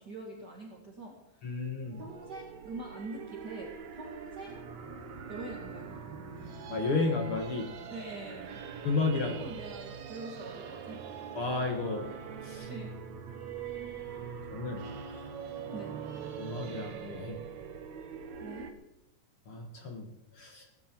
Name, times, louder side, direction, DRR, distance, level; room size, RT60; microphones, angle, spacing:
voice 1, 0.0-1.6 2.0-4.7 5.3-6.0 7.9-8.6 9.1-11.0 12.7-12.9 15.7-16.0 18.4-18.7, right 2 dB, 35° right, -2 dB, 1.9 m, -44 dB
voice 2, 1.4-2.0 6.7-7.7 8.8-9.4 11.3-12.1 12.4-12.7 14.5-14.8 15.1-15.3 16.4-17.4 19.5-20.1 20.3-20.7, left 3 dB, 50° left, 3 dB, 1.9 m, -32 dB
sound 1, 1.8-18.7, right 7 dB, 65° right, 2.2 m, -43 dB
17.5 x 15.0 x 4.6 m, 0.89 s
omnidirectional pair, 4.2 m